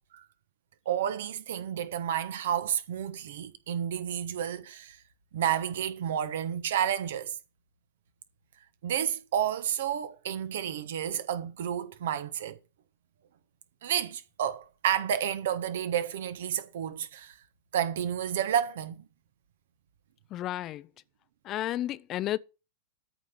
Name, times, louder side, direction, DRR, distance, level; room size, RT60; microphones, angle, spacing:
voice 1, 0.8-5.0 5.3-7.3 8.8-12.6 13.8-17.3 17.7-19.0, right 9 dB, 60° right, 1.2 m, -30 dB
voice 2, 20.3-20.9 21.4-22.4, left 13 dB, 35° left, 0.5 m, -32 dB
13.0 x 5.1 x 6.6 m
figure-of-eight pair, 90°, 0 cm